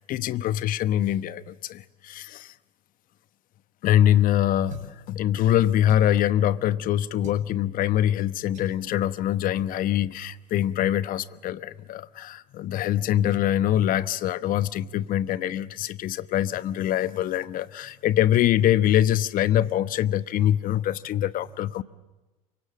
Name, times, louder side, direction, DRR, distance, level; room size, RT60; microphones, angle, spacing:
voice 1, 0.0-2.5 3.8-21.8, left 12 dB, 45° left, 1.2 m, -24 dB
sound 1, 4.7-5.0 5.8-6.3 7.2-7.5 8.5-8.8 9.6-9.7 10.0-10.2 10.5-10.7, right 4 dB, 35° right, 6.6 m, -43 dB
29.0 x 24.5 x 7.6 m
hypercardioid pair, 80°, 20 cm